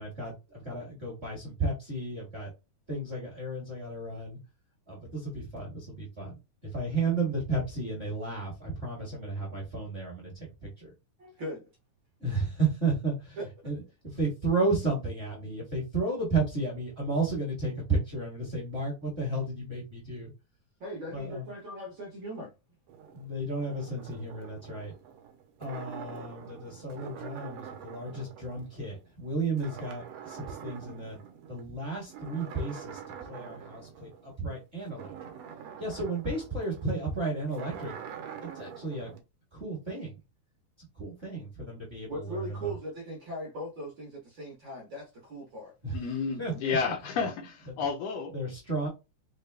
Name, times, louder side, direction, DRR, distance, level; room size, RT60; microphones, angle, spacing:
voice 1, 0.0-2.5 2.9-4.4 4.9-6.4 6.6-10.9 12.2-13.4 13.6-20.3 21.1-21.5 23.1-24.9 25.6-31.2 31.5-33.0 33.3-35.1 35.8-37.9 38.4-39.1 39.5-40.2 40.9-42.7 45.8-45.9 46.4-46.8 48.3-48.9, right 3 dB, 30° right, 1.2 m, -33 dB
voice 2, 11.2-11.7 13.4-13.5 20.8-22.5 42.1-45.7, right 1 dB, 55° right, 1.3 m, -39 dB
sound 1, 22.9-29.3 29.6-31.6 32.0-39.2, right 8 dB, 75° right, 1.6 m, -45 dB
voice 3, 45.9-48.3, left 5 dB, 75° left, 1.5 m, -31 dB
5.1 x 2.2 x 3.3 m
omnidirectional pair, 3.6 m